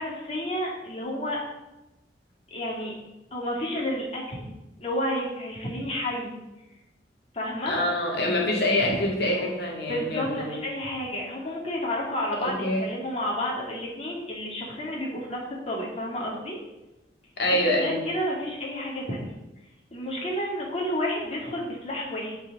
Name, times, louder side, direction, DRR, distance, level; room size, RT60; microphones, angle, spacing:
voice 1, 0.0-1.4 2.5-2.9 3.3-4.5 4.8-6.3 7.3-7.7 8.8-9.0 9.9-16.6 17.6-19.3 19.9-22.4, left 1 dB, 35° left, -3 dB, 2.2 m, -31 dB
voice 2, 7.7-10.5 12.4-12.9 17.4-18.0, left 1 dB, 65° left, 0 dB, 2.2 m, -25 dB
8.3 x 4.7 x 7.3 m, 0.99 s
head